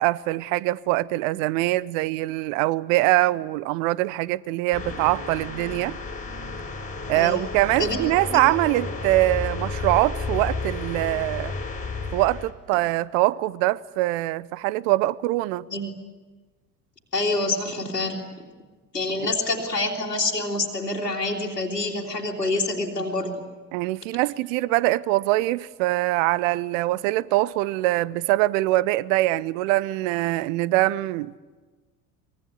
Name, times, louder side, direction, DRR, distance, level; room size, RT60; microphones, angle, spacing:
voice 1, 0.0-6.0 7.1-11.5 12.1-15.7 23.7-31.3, right 18 dB, 55° right, 0.8 m, -23 dB
sound 1, 4.7-12.5, left 3 dB, 15° left, 3.7 m, -32 dB
voice 2, 17.1-18.2 18.9-23.5, left 2 dB, 90° left, 2.7 m, -27 dB
24.0 x 22.0 x 9.8 m
figure-of-eight pair, 65°, 47 cm